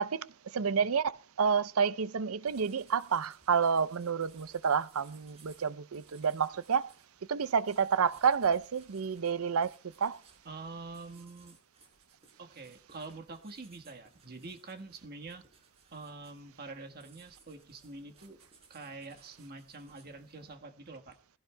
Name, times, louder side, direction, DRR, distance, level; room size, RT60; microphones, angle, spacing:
voice 1, 0.0-6.9 7.3-10.2, right 6 dB, 70° right, 0.6 m, -29 dB
sound 1, 2.4-20.5, right 4 dB, 30° right, 4.7 m, -63 dB
voice 2, 10.4-11.6 12.4-15.4 15.9-18.4 18.7-21.2, right 3 dB, 45° right, 1.4 m, -46 dB
22.0 x 16.0 x 2.2 m
head